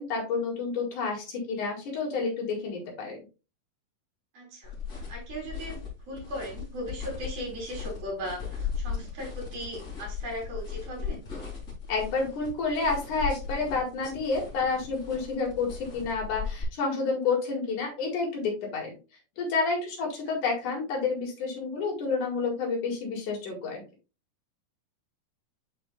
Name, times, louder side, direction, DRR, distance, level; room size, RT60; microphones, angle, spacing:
voice 1, 0.0-3.2 11.9-18.9 19.4-23.8, left 4 dB, 65° left, -1 dB, 3.3 m, -29 dB
voice 2, 4.3-11.2, equal, 80° right, -3 dB, 5.2 m, -38 dB
sound 1, 4.6-16.6, left 6 dB, 25° left, 2.6 m, -38 dB
10.0 x 4.4 x 2.3 m, 0.31 s
omnidirectional pair, 4.0 m